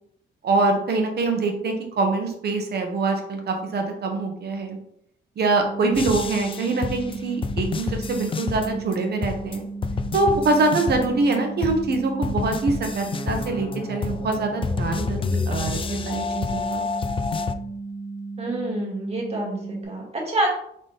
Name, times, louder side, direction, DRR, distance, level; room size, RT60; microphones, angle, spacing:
voice 1, 0.4-4.8 5.4-9.6 10.1-16.8, right 3 dB, 55° right, 3 dB, 1.1 m, -24 dB
sound 1, 5.6-19.8, right 3 dB, 70° left, 1.0 m, -35 dB
sound 2, 5.9-9.0 9.2-11.4 11.6-17.5, left 4 dB, 25° left, 0.3 m, -29 dB
voice 2, 18.4-20.5, right 1 dB, 30° right, -2 dB, 1.8 m, -27 dB
4.0 x 3.7 x 3.4 m, 0.72 s
cardioid pair, 90°, 20 cm